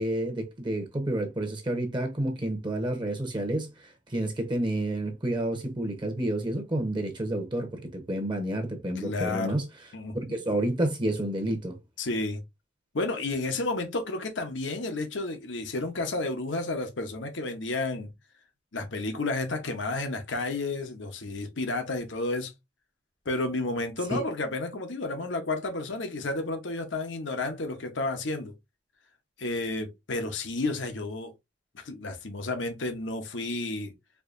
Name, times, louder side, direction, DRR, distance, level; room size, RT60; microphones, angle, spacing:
voice 1, 0.0-9.7 10.3-11.8 24.1-24.2, right 1 dB, 25° right, 0.8 m, -30 dB
voice 2, 9.0-9.6 9.9-10.2 12.0-12.4 12.9-18.1 18.7-22.5 23.2-28.5 29.4-31.3 31.7-33.9, left 2 dB, 80° left, 1.0 m, -31 dB
4.7 x 2.8 x 2.6 m
head